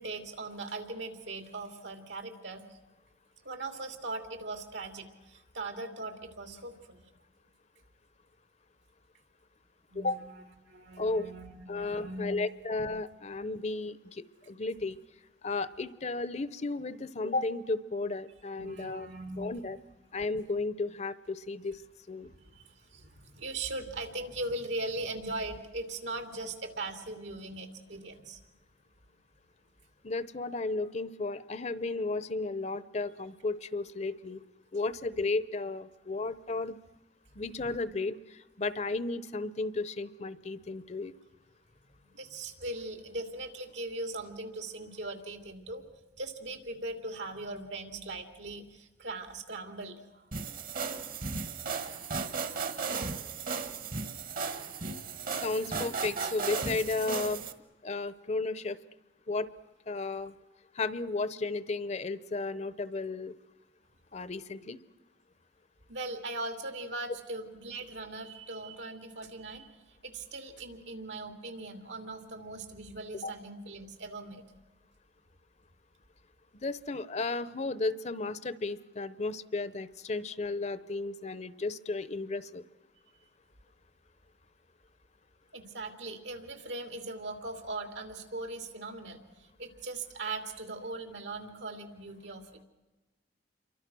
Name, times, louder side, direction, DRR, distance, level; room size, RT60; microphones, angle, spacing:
voice 1, 0.0-2.8 3.4-7.0 9.9-10.2 10.6-12.4 18.6-19.8 22.2-28.4 42.0-45.8 46.1-50.3 55.8-55.9 65.9-74.5 85.5-92.6, right 2 dB, 80° right, 6 dB, 2.8 m, -40 dB
voice 2, 9.9-10.2 11.0-11.3 11.7-15.0 15.4-19.1 19.4-19.8 20.1-21.8 22.1-22.3 30.0-34.4 34.7-36.8 37.3-41.1 55.4-57.4 57.8-58.8 59.3-59.5 59.9-60.4 60.7-63.3 64.1-64.8 73.2-73.3 76.5-82.6, left 3 dB, 40° left, 16 dB, 0.8 m, -34 dB
sound 1, 50.3-57.5, right 5 dB, 50° right, 1.5 m, -35 dB
28.5 x 24.0 x 6.2 m, 1.1 s
head